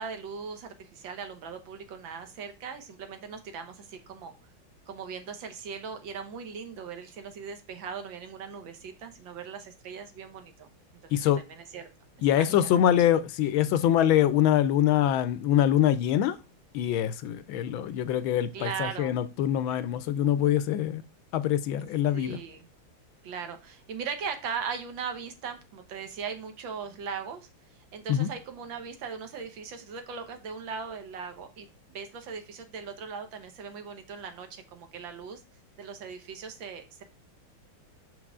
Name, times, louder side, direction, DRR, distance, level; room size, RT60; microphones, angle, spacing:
voice 1, 0.0-4.3 4.9-10.7 11.0-11.9 12.3-12.8 18.5-19.1 22.1-22.7 23.2-27.5 27.9-35.4 35.8-37.0, right 6 dB, 70° right, 1.7 m, -39 dB
voice 2, 11.1-11.4 12.2-16.4 16.7-21.0 21.3-22.4 28.1-28.3, left 11 dB, 75° left, 1.3 m, -24 dB
6.2 x 4.7 x 3.6 m
omnidirectional pair, 2.3 m